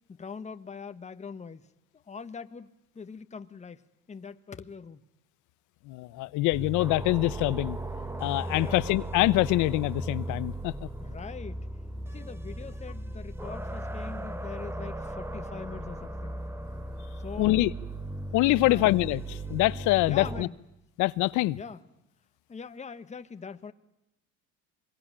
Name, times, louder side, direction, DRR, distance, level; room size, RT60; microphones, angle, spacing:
voice 1, 0.1-1.6 2.1-2.7 2.9-5.0 8.5-8.8 11.0-11.7 12.1-16.4 17.2-17.6 18.6-18.9 20.0-20.6 21.5-21.8 22.5-23.7, left 5 dB, 25° left, 1.4 m, -42 dB
voice 2, 5.9-7.8 8.2-10.7 17.4-17.7 18.3-20.5 21.0-21.6, left 18 dB, 75° left, 1.0 m, -25 dB
sound 1, 6.5-20.5, right 1 dB, 10° right, 1.3 m, -37 dB
26.0 x 22.0 x 8.9 m
cardioid pair, 105°, 30 cm